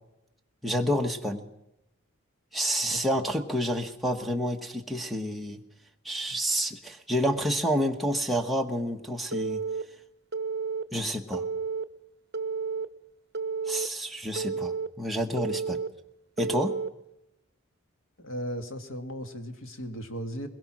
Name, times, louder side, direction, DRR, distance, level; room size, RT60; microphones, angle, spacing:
voice 1, 0.6-1.5 2.5-5.6 6.0-9.6 10.9-11.5 13.6-15.8 16.4-16.8, equal, ahead, 7 dB, 1.2 m, -29 dB
Telephone, 9.3-9.8 10.3-10.8 11.3-11.8 12.3-12.9 13.3-13.9 14.4-14.9 15.4-15.9 16.4-16.9, right 5 dB, 50° right, 0.9 m, -31 dB
voice 2, 18.2-20.5, equal, 65° left, 6 dB, 2.0 m, -36 dB
21.5 x 21.5 x 6.1 m, 0.87 s
head